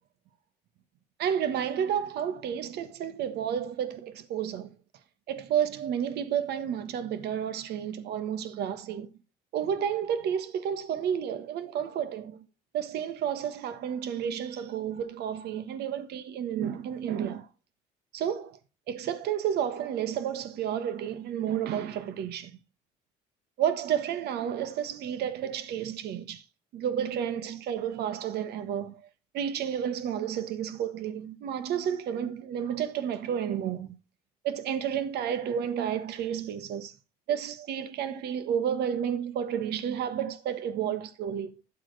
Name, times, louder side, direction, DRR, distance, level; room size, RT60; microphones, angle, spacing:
voice 1, 1.2-4.7 5.3-9.1 9.5-12.4 12.7-17.5 18.1-18.6 18.9-22.5 23.6-26.4 26.7-29.1 29.3-33.9 34.4-36.9 37.3-41.6, right 9 dB, 75° right, 1.3 m, -31 dB
12.5 x 7.5 x 3.3 m
cardioid pair, 110°, 17 cm